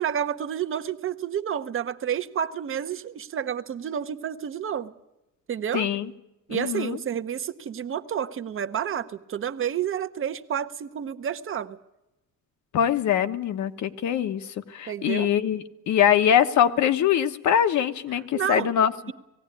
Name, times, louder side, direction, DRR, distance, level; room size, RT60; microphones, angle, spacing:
voice 1, 0.0-4.9 5.5-5.9 6.5-11.8 14.9-15.3 18.3-18.7, right 9 dB, 40° right, 11 dB, 0.9 m, -30 dB
voice 2, 5.7-6.1 6.5-7.0 12.7-19.1, left 9 dB, 65° left, 10 dB, 1.2 m, -23 dB
19.0 x 16.0 x 9.8 m, 0.93 s
cardioid pair, 145°, 31 cm